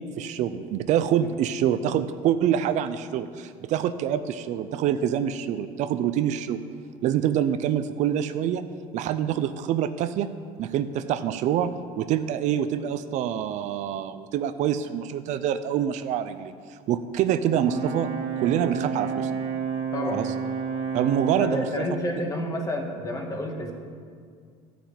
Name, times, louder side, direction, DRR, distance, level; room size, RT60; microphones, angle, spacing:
voice 1, 0.0-6.6 7.0-8.7 8.9-10.3 10.6-18.1 18.4-19.3 20.1-20.3 20.9-21.7, right 10 dB, 60° right, 11 dB, 0.5 m, -26 dB
Brass instrument, 17.5-21.7, right 6 dB, 80° right, 2.3 m, -30 dB
voice 2, 19.9-20.2 21.4-23.7, left 1 dB, 25° left, 1 dB, 1.8 m, -30 dB
12.5 x 6.0 x 8.3 m, 2.1 s
cardioid pair, 125°, 14 cm